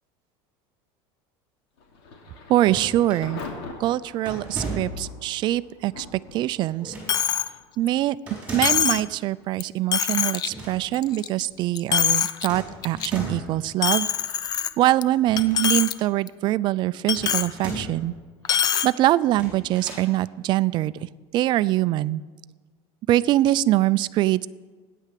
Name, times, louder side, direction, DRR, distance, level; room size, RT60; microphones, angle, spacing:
Thunder / Rain, 1.7-18.5, left 3 dB, 75° left, 2.9 m, -47 dB
sound 1, 2.5-3.3 4.2-5.2 6.8-7.3 8.3-8.9 10.4-10.8 11.1-11.2 12.5-13.6 15.2-16.0 17.1-18.1 19.2-20.1, right 2 dB, 10° right, 5.4 m, -36 dB
voice 1, 2.5-3.4 3.8-6.9 7.8-8.2 8.5-14.1 14.8-18.1 18.6-22.2 23.1-24.5, right 15 dB, 35° right, 16 dB, 0.4 m, -23 dB
Coin (dropping), 7.1-7.5 7.9-8.0 8.6-9.1 9.6-9.7 9.9-10.5 10.9-11.5 11.8-12.5 12.8-13.1 13.8-15.0 15.4-15.9 16.3-16.4 17.1-17.5 18.4-18.9, left 9 dB, 30° left, 0.5 m, -23 dB
16.0 x 10.0 x 7.6 m, 1.4 s
cardioid pair, 160°, 13 cm